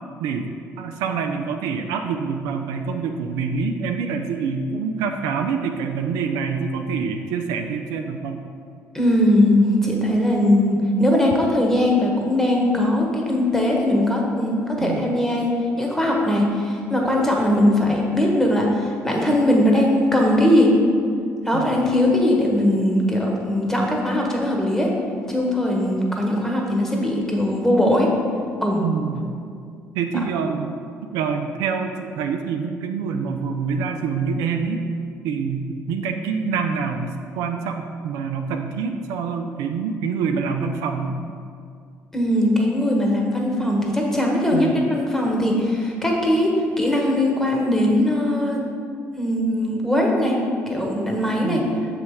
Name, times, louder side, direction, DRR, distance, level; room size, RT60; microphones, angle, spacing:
voice 1, 0.8-8.4 14.8-15.1 21.5-21.8 28.8-29.3 29.9-30.8 31.1-34.8 35.2-41.2 44.5-44.9 51.4-51.6, right 5 dB, 70° right, 5 dB, 0.4 m, -26 dB
voice 2, 8.9-20.7 21.4-24.9 25.3-28.1 28.6-28.8 42.1-48.6 49.1-50.4 50.7-51.6, left 1 dB, 5° left, -1 dB, 1.4 m, -20 dB
6.8 x 3.2 x 4.9 m, 2.3 s
hypercardioid pair, 50°, 7 cm